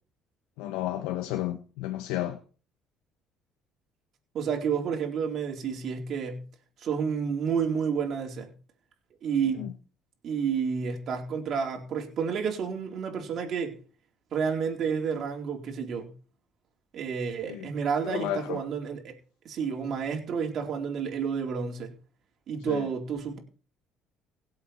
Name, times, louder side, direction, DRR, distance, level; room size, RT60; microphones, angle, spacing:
voice 1, 0.6-2.4 9.6-9.7 17.5-17.7 18.0-18.6 22.7-22.9, left 13 dB, 85° left, 1.2 m, -32 dB
voice 2, 4.3-6.4 6.8-8.5 9.2-9.7 10.2-13.8 14.3-16.1 16.9-19.1 19.4-21.9 22.5-23.4, right 6 dB, 55° right, 4.2 m, -30 dB
17.5 x 7.8 x 4.5 m
supercardioid pair, 85°, 0 cm